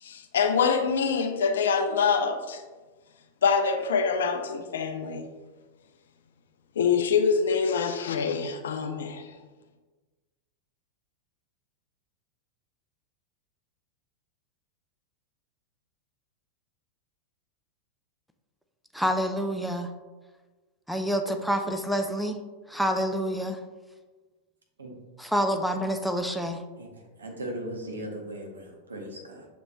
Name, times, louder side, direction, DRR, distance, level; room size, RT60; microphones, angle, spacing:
voice 1, 0.0-2.6 3.4-5.2 6.8-9.3, left 6 dB, 65° left, 0.4 m, -25 dB
voice 2, 19.0-19.9 20.9-22.4 22.7-23.6 25.2-26.6, equal, ahead, 0.3 m, -27 dB
voice 3, 27.2-29.5, right 1 dB, 70° right, 0.8 m, -38 dB
7.0 x 3.0 x 2.2 m
figure-of-eight pair, 90°, 0 cm